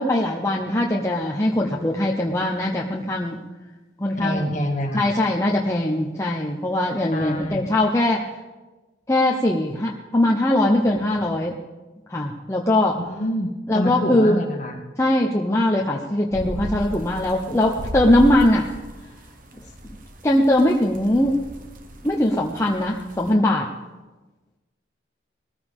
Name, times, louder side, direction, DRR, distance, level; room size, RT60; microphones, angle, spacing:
voice 1, 0.0-3.4 4.0-4.4 4.9-8.2 9.1-11.5 12.1-13.0 13.7-14.4 15.0-18.7 19.8-19.9 20.2-21.4 22.0-23.7, left 1 dB, 15° left, -2 dB, 0.8 m, -21 dB
voice 2, 4.2-5.1 7.1-7.7 13.1-14.8, equal, 40° left, 1 dB, 2.1 m, -26 dB
sound 1, 16.3-23.3, equal, 50° right, 1.2 m, -36 dB
20.0 x 15.0 x 3.6 m, 1.2 s
head